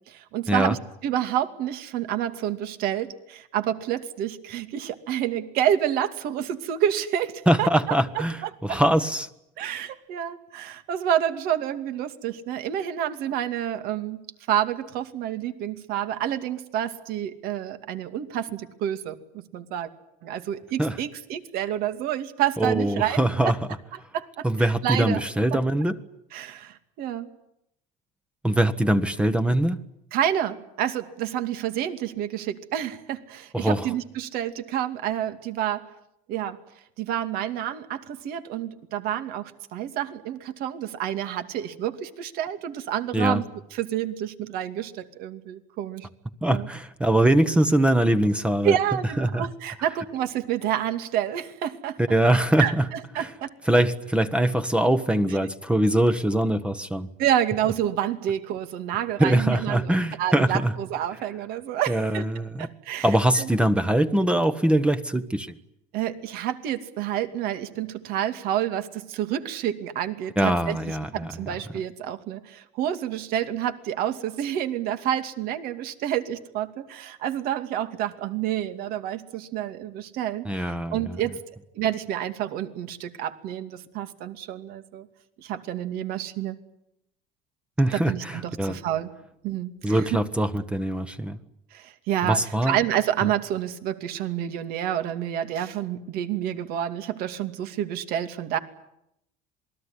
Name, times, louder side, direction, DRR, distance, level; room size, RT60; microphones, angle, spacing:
voice 1, 0.1-7.3 7.6-8.2 8.7-8.8 9.6-14.2 14.5-19.9 20.2-23.5 24.1-25.2 25.5-25.6 26.3-27.3 30.1-35.9 36.3-36.6 37.0-43.4 43.7-46.1 46.5-46.7 48.6-52.0 52.6-53.5 57.2-62.2 62.6-63.1 63.4-63.5 65.9-81.3 81.7-85.1 85.4-86.6 87.9-89.1 89.4-90.2 91.7-98.6, right 10 dB, 65° right, 9 dB, 2.6 m, -29 dB
voice 2, 7.5-9.3 20.8-21.0 22.6-23.6 24.4-26.0 28.4-29.8 33.5-33.9 43.1-43.4 46.4-48.8 49.2-49.5 52.0-52.9 53.2-53.3 53.7-57.1 59.2-60.7 61.9-62.7 63.0-65.6 70.4-71.3 80.4-81.2 87.8-88.8 89.8-91.4 92.2-92.8 93.2-93.3, right 1 dB, 5° right, 11 dB, 1.2 m, -22 dB
27.5 x 21.0 x 9.8 m, 0.81 s
cardioid pair, 145°, 17 cm